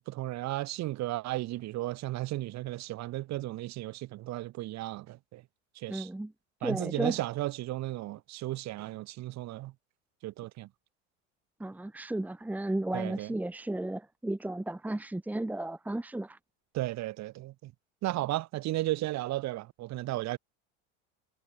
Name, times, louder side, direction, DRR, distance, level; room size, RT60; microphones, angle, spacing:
voice 1, 0.0-5.4 5.8-6.1 6.6-9.7 10.2-10.7 12.9-13.3 16.7-17.7 18.0-20.4, right 17 dB, 50° right, 5.5 m, -34 dB
voice 2, 5.9-6.3 6.6-7.1 11.6-16.4, right 1 dB, 5° right, 1.7 m, -34 dB
supercardioid pair, 130°, 35 cm